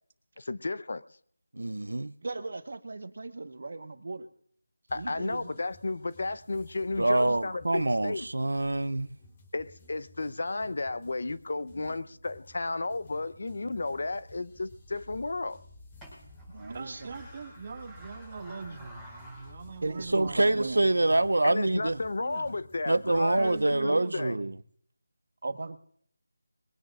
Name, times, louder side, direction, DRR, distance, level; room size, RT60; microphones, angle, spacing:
voice 1, 0.4-1.0 4.9-8.2 9.5-15.6 21.4-24.4, left 3 dB, 55° left, 0.8 m, -33 dB
voice 2, 1.5-2.1 7.0-9.1 20.1-22.0 22.9-24.5, right 2 dB, 85° right, 0.6 m, -26 dB
voice 3, 2.2-4.3 4.9-5.6 16.5-17.2 19.8-20.8 25.4-25.8, right 3 dB, 55° right, 1.3 m, -37 dB
sound 1, 4.9-23.6, left 1 dB, 20° left, 3.7 m, -55 dB
sound 2, 14.5-20.8, left 1 dB, 5° left, 5.4 m, -51 dB
voice 4, 16.7-21.1 22.2-22.5 23.1-24.6, right 4 dB, 30° right, 2.1 m, -42 dB
22.5 x 17.5 x 2.5 m
figure-of-eight pair, 170°, 0 cm